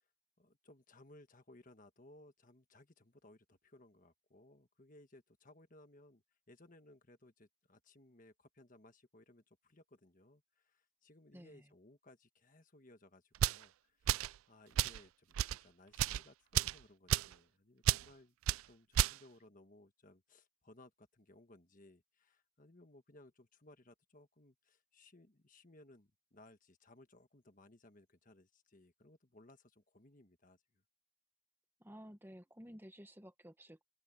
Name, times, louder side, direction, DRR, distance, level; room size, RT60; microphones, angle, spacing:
voice 1, 0.4-30.8, left 1 dB, 40° left, 1.5 m, -62 dB
voice 2, 11.3-11.7 31.8-33.8, equal, 10° right, 1.5 m, -54 dB
sound 1, 13.3-13.6 14.1-14.3 14.8-15.0 15.3-15.6 15.9-16.2 16.5-16.8 17.1-17.3 17.8-18.0 18.5-18.6 18.9-19.2, right 11 dB, 75° right, 0.3 m, -32 dB
open air
head